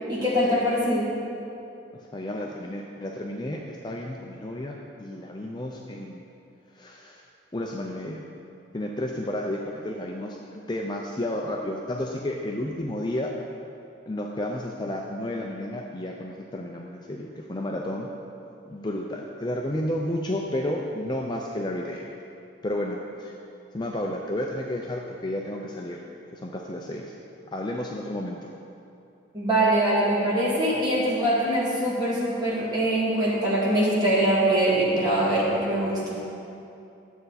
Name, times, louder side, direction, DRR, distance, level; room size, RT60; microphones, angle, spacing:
voice 1, 0.1-1.1 29.3-36.2, right 1 dB, 20° right, -8 dB, 2.4 m, -23 dB
voice 2, 1.9-6.2 6.7-7.2 7.5-8.2 8.7-13.3 14.1-18.1 18.7-22.1 22.6-23.3 23.7-26.0 26.3-27.2 27.5-28.5, left 1 dB, 20° left, 0 dB, 0.5 m, -32 dB
12.0 x 7.8 x 4.1 m, 2.7 s
head